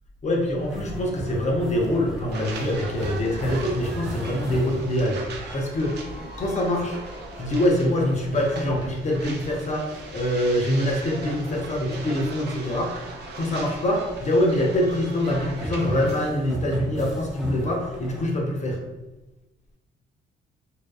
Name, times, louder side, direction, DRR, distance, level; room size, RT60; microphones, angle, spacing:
voice 1, 0.2-5.2 5.5-5.9 6.4-7.0 7.4-12.9 13.3-18.8, left 1 dB, 35° left, 0 dB, 0.5 m, -24 dB
sound 1, 0.6-18.2, right 1 dB, ahead, 0.6 m, -38 dB
sound 2, 2.3-16.3, right 3 dB, 60° right, 0.5 m, -40 dB
2.7 x 2.2 x 2.2 m, 1.0 s
cardioid pair, 90°, 20 cm